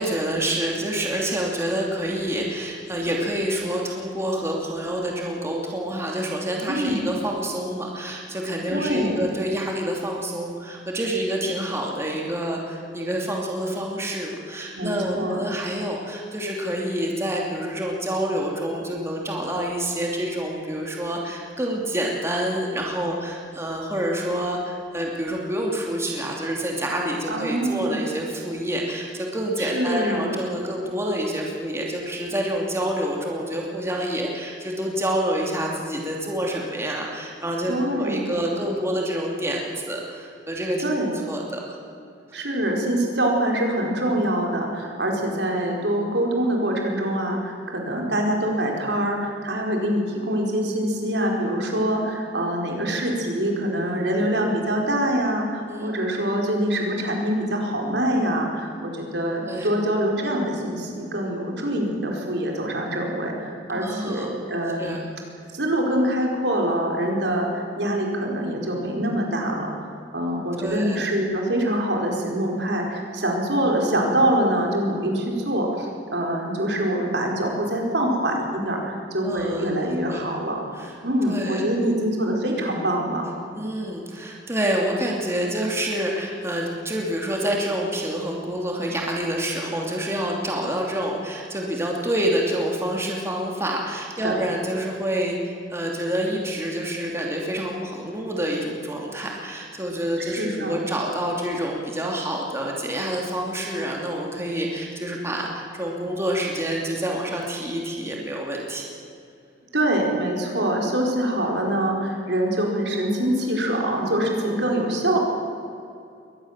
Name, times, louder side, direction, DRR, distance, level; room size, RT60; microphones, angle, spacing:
voice 1, 0.0-40.8 41.3-41.8 55.6-55.9 59.5-59.7 63.7-64.3 64.8-65.0 70.6-71.0 79.2-79.7 80.1-80.3 80.7-80.9 81.3-81.6 83.6-108.9, right 1 dB, 15° right, -1 dB, 2.9 m, -27 dB
voice 2, 6.7-7.0 8.7-9.3 14.8-15.4 27.3-28.0 29.6-30.5 37.7-38.4 40.8-41.2 42.3-64.9 65.5-80.6 81.0-83.3 94.2-94.4 100.2-100.8 109.7-115.2, right 1 dB, 70° right, 1 dB, 4.7 m, -24 dB
23.0 x 19.0 x 7.5 m, 2.5 s
head